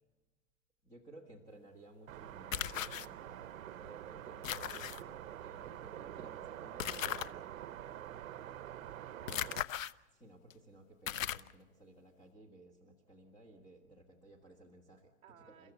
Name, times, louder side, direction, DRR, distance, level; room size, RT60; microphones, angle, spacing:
voice 1, 0.8-3.5 3.7-7.5 10.1-15.7, right 1 dB, 10° left, 1 dB, 1.6 m, -58 dB
sound 1, 2.1-9.6, right 11 dB, 65° right, 0.9 m, -47 dB
sound 2, 2.5-3.1 4.4-5.0 6.8-7.3 9.3-9.9 10.5-10.6 11.1-11.5, left 11 dB, 65° left, 0.9 m, -37 dB
voice 2, 8.1-8.5 8.8-9.7 15.2-15.7, right 7 dB, 15° right, -4 dB, 2.1 m, -62 dB
30.0 x 14.5 x 8.2 m, 1.1 s
supercardioid pair, 180°, 42 cm